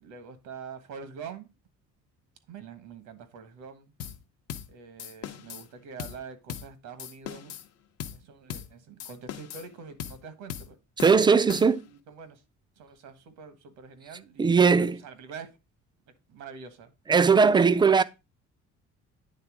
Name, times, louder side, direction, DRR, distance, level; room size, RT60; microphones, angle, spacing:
voice 1, 0.0-1.5 2.5-3.9 4.7-7.5 8.1-10.8 11.9-12.4 12.8-14.8 15.0-15.5 16.3-16.9, right 6 dB, 85° right, 1.4 m, -45 dB
sound 1, 4.0-4.2 4.5-4.7 5.0-5.7 6.0-6.2 6.5-6.7 7.0-7.7 8.0-8.2 8.5-8.7 9.0-9.7 10.0-10.2 10.5-10.7 11.0-11.9, left 10 dB, 60° left, 0.7 m, -39 dB
voice 2, 11.0-11.8 14.4-15.0 17.1-18.0, right 5 dB, 15° right, 0.3 m, -19 dB
9.3 x 3.4 x 4.8 m
cardioid pair, 125°, 29 cm